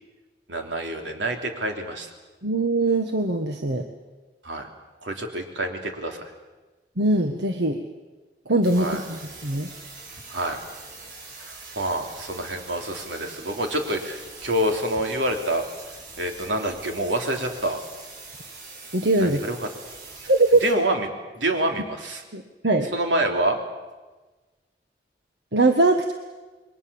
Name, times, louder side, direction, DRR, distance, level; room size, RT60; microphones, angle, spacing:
voice 1, 0.5-2.1 4.4-4.7 5.0-6.3 8.8-9.0 10.3-10.6 11.4-15.6 16.2-17.8 19.2-19.7 20.6-21.1 21.3-22.2 22.9-23.6, right 1 dB, 90° right, 3 dB, 3.4 m, -27 dB
voice 2, 2.4-3.9 7.0-7.8 8.5-9.7 18.9-19.4 20.2-20.6 22.3-22.9 25.5-26.1, right 2 dB, 70° right, 5 dB, 1.5 m, -21 dB
sound 1, 8.6-20.7, right 3 dB, 50° right, 7.3 m, -43 dB
28.5 x 22.5 x 7.1 m, 1.2 s
head